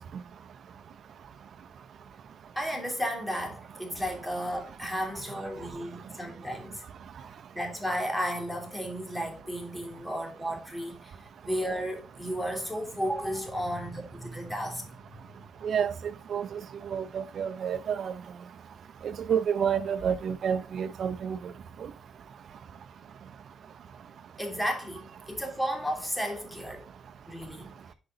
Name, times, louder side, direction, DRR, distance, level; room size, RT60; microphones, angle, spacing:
voice 1, 2.5-6.8 7.5-15.0 24.4-26.8 27.3-27.8, equal, 5° left, 2.9 m, -33 dB
voice 2, 15.6-18.2 19.0-21.5 21.8-21.9, right 7 dB, 60° right, 0.7 m, -30 dB
8.4 x 5.1 x 3.9 m
cardioid pair, 90°, 0 cm